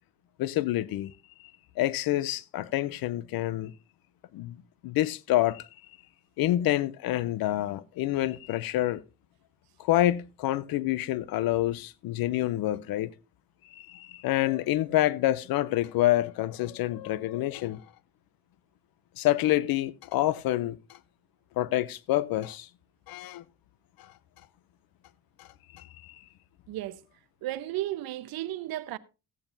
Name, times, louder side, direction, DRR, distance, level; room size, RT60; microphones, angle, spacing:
voice 1, 0.4-1.1 1.4-3.7 4.3-4.6 4.8-5.7 6.4-9.0 9.8-13.1 13.6-17.8 19.2-21.0 21.6-22.7 23.1-23.4 24.0-24.1 25.4-25.5 25.7-26.2, left 14 dB, 75° left, 0.6 m, -27 dB
voice 2, 26.7-27.0 27.4-29.0, right 14 dB, 75° right, 0.8 m, -34 dB
15.0 x 8.8 x 2.6 m
cardioid pair, 100°, 36 cm